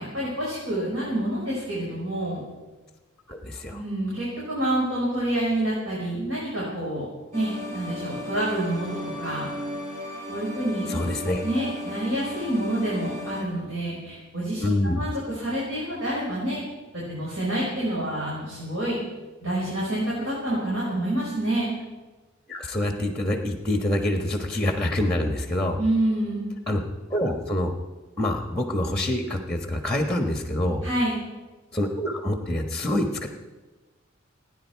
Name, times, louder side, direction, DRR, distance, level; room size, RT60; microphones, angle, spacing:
voice 1, 0.0-2.4 3.7-7.1 7.3-9.5 10.3-11.0 11.4-16.6 16.9-19.0 19.4-21.7 25.8-26.5 30.8-31.2, right 1 dB, 80° right, -7 dB, 5.6 m, -28 dB
voice 2, 3.3-3.8 10.9-11.4 14.6-15.0 22.5-25.8 26.7-26.8 27.1-27.7 28.2-30.8 31.7-33.3, left 1 dB, 5° left, 4 dB, 1.3 m, -26 dB
sound 1, 7.3-13.4, left 1 dB, 40° right, 2.9 m, -35 dB
29.0 x 10.0 x 4.6 m, 1.2 s
head